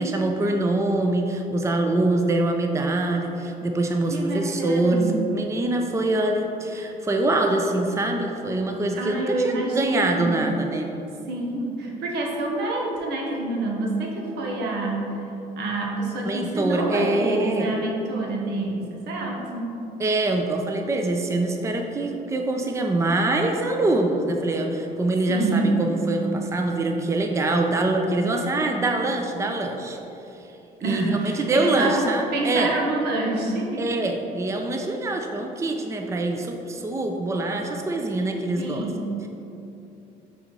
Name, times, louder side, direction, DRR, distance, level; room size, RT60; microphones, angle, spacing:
voice 1, 0.0-5.0 5.3-10.9 16.3-17.7 20.0-30.0 30.8-32.7 33.8-38.9, right 2 dB, 15° right, 3 dB, 0.5 m, -24 dB
voice 2, 4.1-5.2 9.0-10.4 11.3-15.1 15.6-19.6 25.3-26.0 30.8-33.9 38.6-39.1, right 2 dB, 85° right, -1 dB, 1.2 m, -27 dB
5.6 x 4.2 x 5.5 m, 2.9 s
cardioid pair, 110°, 17 cm